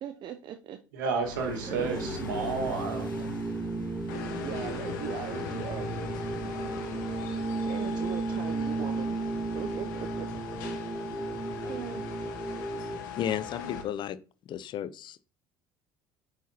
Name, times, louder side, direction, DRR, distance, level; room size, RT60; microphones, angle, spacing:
voice 1, 0.0-0.8 1.5-1.9 4.4-6.1 7.6-9.3 9.5-10.3 10.9-11.3 11.7-12.0, right 9 dB, 50° right, 0.6 m, -40 dB
voice 2, 0.9-3.3 11.5-11.7, right 4 dB, 75° right, 1.8 m, -32 dB
sound 1, 1.2-11.7, left 2 dB, 90° left, 1.3 m, -46 dB
sound 2, 1.7-13.0, right 3 dB, 15° right, 1.4 m, -34 dB
sound 3, 4.1-13.8, left 7 dB, 75° left, 1.4 m, -40 dB
voice 3, 13.1-14.2 14.5-15.2, left 9 dB, 50° left, 0.6 m, -33 dB
8.9 x 4.9 x 2.9 m
hypercardioid pair, 65°, 11 cm